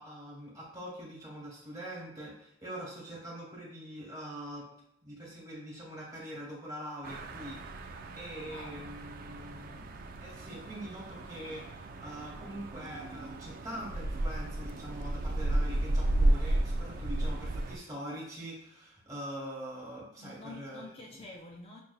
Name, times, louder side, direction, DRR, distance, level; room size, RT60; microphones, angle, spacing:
voice 1, 0.0-4.7 5.0-9.9 10.2-20.9, equal, 20° right, -4 dB, 1.3 m, -43 dB
sound 1, 7.0-17.8, right 1 dB, 45° right, 0.3 m, -33 dB
voice 2, 8.5-8.9 20.2-21.8, left 2 dB, 30° left, 0 dB, 0.4 m, -48 dB
5.9 x 2.6 x 2.3 m, 0.76 s
head